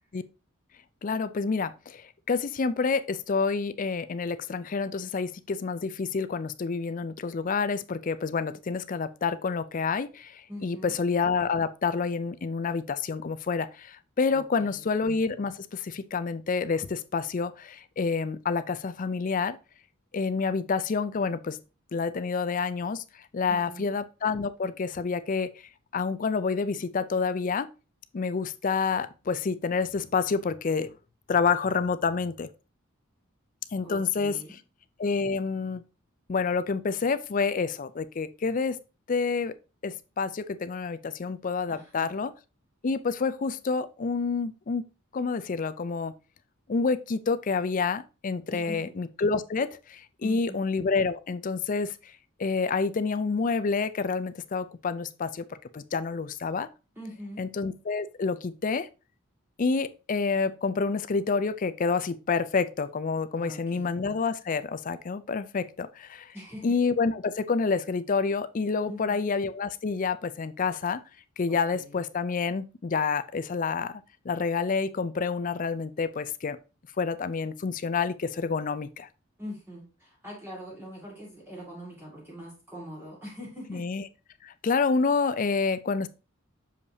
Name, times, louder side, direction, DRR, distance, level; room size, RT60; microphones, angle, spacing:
voice 1, 1.0-2.0 2.3-19.6 20.1-21.6 21.9-23.0 23.3-25.5 25.9-27.7 28.1-30.9 31.3-32.5 33.7-34.3 35.0-35.8 36.3-38.8 39.1-39.5 39.8-42.3 42.8-44.8 45.1-46.1 46.7-51.9 52.4-55.4 55.7-56.7 57.4-58.9 59.6-66.3 66.6-71.0 71.4-74.0 74.3-76.6 77.0-79.1 83.7-84.0 84.4-86.1, left 4 dB, 40° left, 0.4 m, -28 dB
voice 2, 10.5-11.0 14.3-14.9 23.5-23.9 33.8-34.6 41.7-42.1 48.5-49.0 50.2-50.7 57.0-57.4 63.4-63.9 66.3-66.8 68.9-69.2 71.5-72.1 79.4-83.9, equal, 10° right, 2.0 m, -43 dB
6.6 x 5.3 x 2.7 m
head